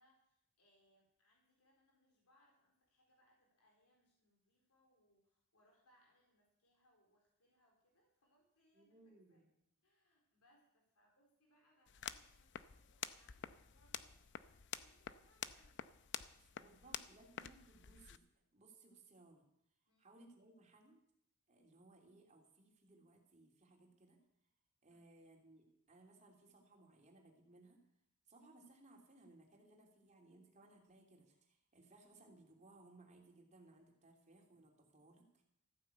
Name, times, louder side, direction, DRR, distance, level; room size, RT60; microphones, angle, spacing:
voice 1, 0.0-9.5 9.8-17.2 19.9-20.1 24.9-25.1, equal, 80° left, 0 dB, 4.0 m, -75 dB
voice 2, 8.7-9.5 16.4-19.5 20.0-21.0 21.5-24.2 24.8-27.8 28.3-35.4, right 2 dB, 30° right, 1 dB, 3.1 m, -64 dB
sound 1, 11.9-18.2, left 9 dB, 55° left, 0.6 m, -49 dB
14.5 x 9.7 x 8.0 m, 0.74 s
head